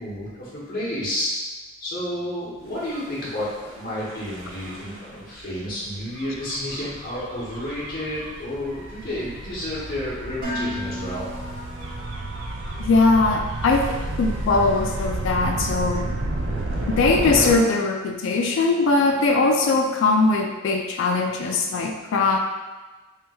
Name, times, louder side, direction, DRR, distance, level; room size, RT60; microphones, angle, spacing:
voice 1, 0.0-1.3 1.8-11.2, left 1 dB, 45° left, -8 dB, 0.8 m, -31 dB
Gull seagull / Waves surf / Siren, 2.8-17.6, right 2 dB, 60° right, 0.5 m, -31 dB
Dishes pots and pans, 10.4-12.5, left 1 dB, 45° right, 1.0 m, -33 dB
voice 2, 12.8-16.1 16.9-22.4, left 3 dB, 60° left, 2 dB, 0.3 m, -21 dB
3.2 x 3.0 x 2.2 m, 1.2 s
head